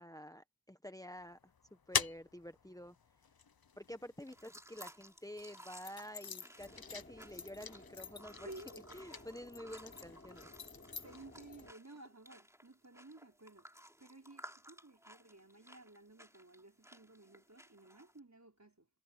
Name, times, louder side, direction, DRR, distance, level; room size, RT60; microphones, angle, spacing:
voice 1, 0.0-1.4 1.9-2.9 3.8-8.5 8.9-10.5, equal, 10° left, 1.1 m, -49 dB
sound 1, 1.2-4.8 5.4-11.7, left 6 dB, 90° left, 0.8 m, -44 dB
sound 2, 4.2-18.2, equal, 10° right, 3.0 m, -58 dB
sound 3, 6.6-11.7, left 2 dB, 30° left, 3.0 m, -57 dB
voice 2, 8.4-9.2 11.0-13.7 14.0-18.9, right 2 dB, 50° right, 5.0 m, -55 dB
wide cardioid pair, 40°, 35 cm